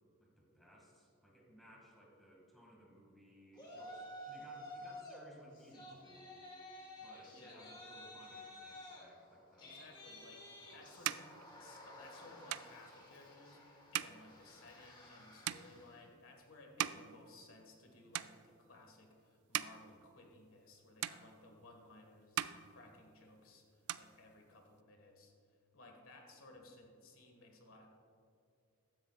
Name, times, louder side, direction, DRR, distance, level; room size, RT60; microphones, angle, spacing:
voice 1, 0.2-6.5 7.0-9.9 10.7-10.9, equal, ahead, -3 dB, 2.0 m, -61 dB
Yell, 3.5-5.2 5.5-16.0, left 1 dB, 20° left, 1.5 m, -53 dB
voice 2, 7.3-7.7 9.6-11.2 11.6-13.6 13.9-27.9, left 2 dB, 65° left, 2 dB, 1.7 m, -59 dB
sound 1, 10.2-17.9 18.1-18.8 19.3-20.7 21.0-21.9 22.2-23.4 23.7-24.8, right 12 dB, 80° right, 0.3 m, -43 dB
14.5 x 10.5 x 2.4 m, 2.5 s
head